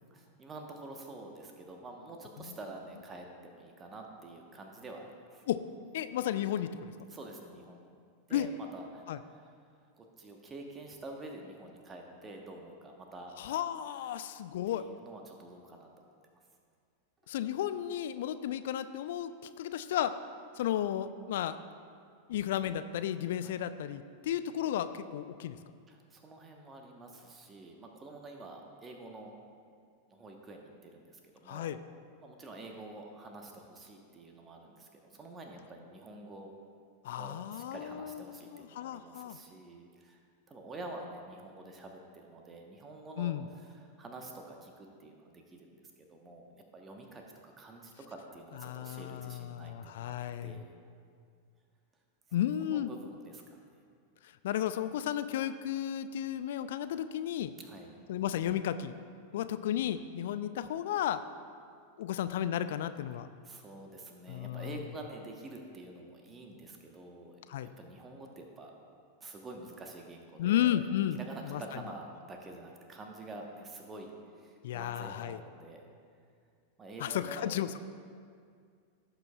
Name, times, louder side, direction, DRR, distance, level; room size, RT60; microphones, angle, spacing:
voice 1, 0.1-5.5 7.1-7.9 8.3-9.5 9.9-13.3 14.0-14.2 14.7-16.1 23.4-23.6 25.9-29.3 30.1-31.8 32.2-36.5 37.2-40.2 40.5-46.5 46.7-50.2 50.4-50.7 52.6-53.8 57.6-57.9 59.3-60.0 63.4-67.4 67.8-68.7 69.2-70.8 71.1-75.9 76.8-77.6, right 2 dB, 20° right, 2 dB, 1.1 m, -48 dB
voice 2, 5.9-6.9 8.3-8.5 9.1-9.2 13.4-14.8 17.3-20.1 20.6-21.6 22.3-25.6 31.5-31.8 37.0-39.4 43.2-43.4 48.6-50.6 52.3-52.9 54.4-57.5 58.1-59.0 59.3-61.2 62.0-63.3 64.3-64.7 67.5-67.7 70.4-71.2 71.4-71.6 74.6-75.4 77.0-77.7, left 11 dB, 55° left, 12 dB, 0.3 m, -33 dB
16.5 x 6.8 x 2.4 m, 2.2 s
figure-of-eight pair, 90°, 0 cm